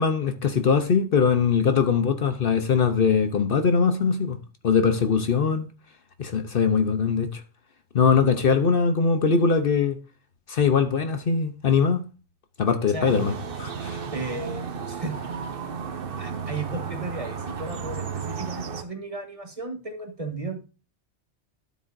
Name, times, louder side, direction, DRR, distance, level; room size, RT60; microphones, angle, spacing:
voice 1, 0.0-4.4 4.6-5.7 6.2-7.4 7.9-10.0 10.5-12.0 12.6-14.0, left 6 dB, 60° left, 0.9 m, -21 dB
voice 2, 12.9-13.2 14.1-15.1 16.2-20.6, right 2 dB, 30° right, 1.6 m, -34 dB
sound 1, 13.1-18.8, right 6 dB, 55° right, 1.0 m, -33 dB
12.5 x 7.1 x 2.6 m
omnidirectional pair, 1.1 m